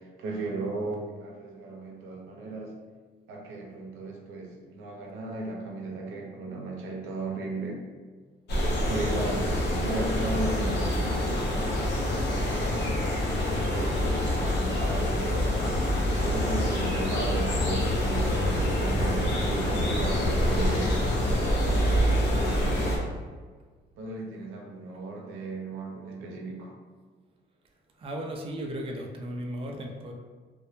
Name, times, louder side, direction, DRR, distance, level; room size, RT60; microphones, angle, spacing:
voice 1, 0.0-2.7 3.3-7.8 8.9-13.1 13.6-15.7 16.2-21.0 21.6-23.2 24.0-26.7, right 2 dB, 85° right, -1 dB, 0.5 m, -36 dB
sound 1, 8.5-23.0, left 1 dB, 60° left, 0.7 m, -26 dB
voice 2, 28.0-30.1, equal, 30° right, 2 dB, 0.4 m, -36 dB
2.1 x 2.1 x 2.9 m, 1.5 s
cardioid pair, 90°, 20 cm